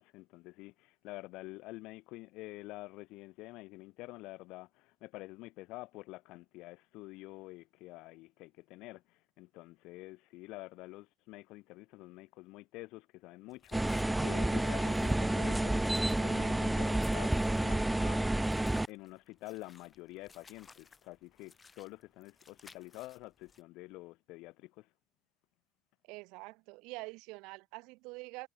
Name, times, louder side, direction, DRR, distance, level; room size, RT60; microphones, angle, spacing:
voice 1, 0.0-18.4 18.9-24.9, left 21 dB, 70° left, 2.8 m, -48 dB
sound 1, 13.5-23.6, left 5 dB, 20° left, 4.1 m, -59 dB
sound 2, 13.7-18.9, right 1 dB, 5° right, 1.0 m, -30 dB
voice 2, 26.1-28.5, right 26 dB, 75° right, 3.9 m, -46 dB
cardioid pair, 145°, 0 cm